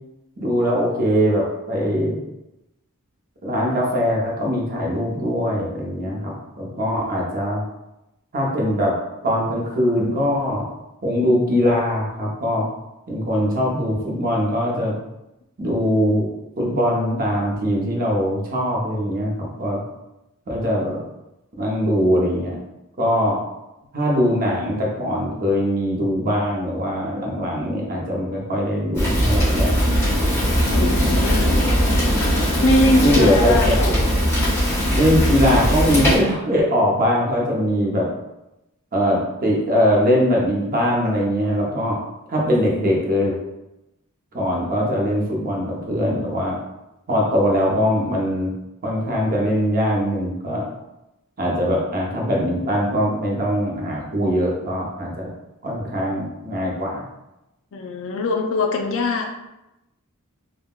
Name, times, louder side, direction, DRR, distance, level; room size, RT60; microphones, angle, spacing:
voice 1, 0.4-2.2 3.4-7.6 8.3-8.9 9.2-10.7 11.0-12.7 13.1-15.0 15.6-19.8 20.5-21.0 21.6-22.6 23.0-23.4 23.9-29.7 31.0-31.1 33.0-34.0 34.9-38.1 38.9-42.0 42.3-43.4 44.3-46.6 47.1-48.5 48.8-50.7 51.4-55.3 55.6-57.0, equal, 40° right, -2 dB, 0.7 m, -21 dB
Fire, 28.9-36.2, equal, 10° left, 1.2 m, -19 dB
voice 2, 30.7-31.7 32.6-34.0 57.7-59.3, left 2 dB, 60° left, 2 dB, 0.4 m, -22 dB
3.5 x 2.1 x 2.3 m, 0.93 s
head